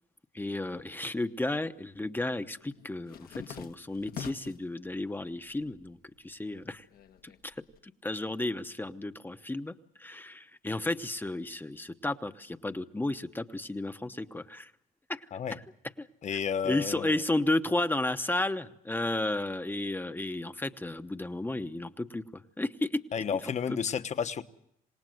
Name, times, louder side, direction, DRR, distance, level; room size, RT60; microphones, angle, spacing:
voice 1, 0.3-6.0 6.2-6.8 7.2-7.5 7.8-14.7 15.1-15.3 16.0-16.4 16.6-23.0 23.7-23.8, left 2 dB, 10° left, 0.9 m, -33 dB
sound 1, 0.8-1.6 1.9-4.7 5.2-5.8 6.1-7.8, left 8 dB, 70° left, 1.5 m, -46 dB
voice 2, 16.2-17.2 23.1-24.4, left 7 dB, 45° left, 1.2 m, -32 dB
27.5 x 18.5 x 7.8 m
cardioid pair, 120°, 16 cm